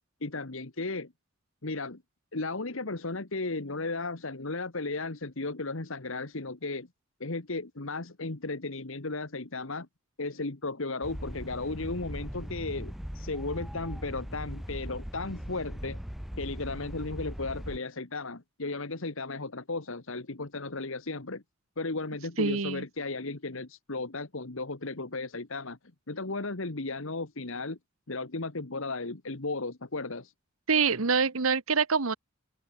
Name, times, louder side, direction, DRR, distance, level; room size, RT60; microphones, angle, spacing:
voice 1, 0.2-1.1 1.6-2.0 2.3-6.9 7.2-9.9 10.2-16.0 16.4-21.4 21.8-25.8 26.1-27.8 28.1-30.3, left 3 dB, 65° left, 1.6 m, -35 dB
sound 1, 11.0-17.8, equal, ahead, 0.4 m, -39 dB
voice 2, 22.4-22.8 30.7-32.2, right 5 dB, 75° right, 1.3 m, -25 dB
open air
head